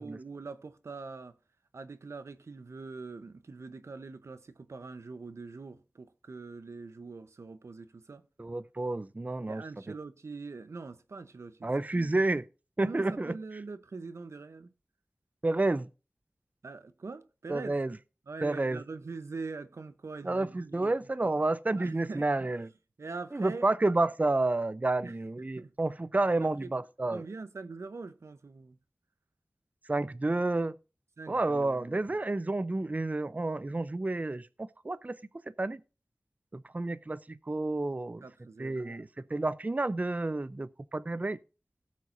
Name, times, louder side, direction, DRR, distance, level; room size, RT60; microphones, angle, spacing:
voice 1, 0.0-1.3 1.7-8.2 9.5-12.1 12.8-14.7 16.6-17.8 18.3-20.9 21.2-21.3 21.8-22.5 23.0-23.7 25.0-25.7 26.4-26.7 27.1-28.8 31.2-32.1 38.2-39.1, right 4 dB, 85° right, 0.8 m, -43 dB
voice 2, 8.4-9.6 11.6-12.4 12.8-13.4 15.4-15.9 17.5-18.0 18.4-18.8 20.2-22.7 23.3-27.2 29.9-30.8 31.3-35.2 35.6-35.8 36.5-38.2 38.6-41.4, right 2 dB, 35° right, 0.5 m, -30 dB
17.5 x 7.5 x 2.6 m
wide cardioid pair, 45°, 5 cm